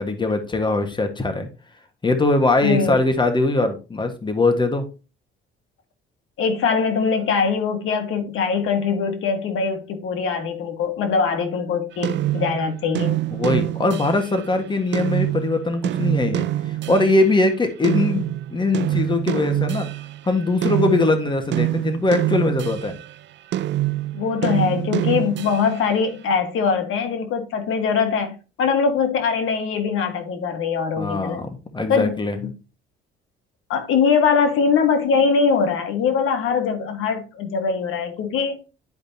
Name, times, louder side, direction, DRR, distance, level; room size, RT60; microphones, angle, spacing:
voice 1, 0.0-1.5 2.0-4.9 13.3-16.5 16.9-19.9 20.2-22.9 31.0-32.4, left 2 dB, 20° left, 1.5 m, -21 dB
voice 2, 2.6-3.0 6.4-13.1 24.1-31.4 31.9-32.1 33.7-38.6, left 5 dB, 80° left, 1.6 m, -22 dB
sound 1, 12.0-17.3 17.8-23.1 23.5-25.9, right 14 dB, 60° right, 0.4 m, -25 dB
11.0 x 5.0 x 2.8 m
cardioid pair, 110°, 21 cm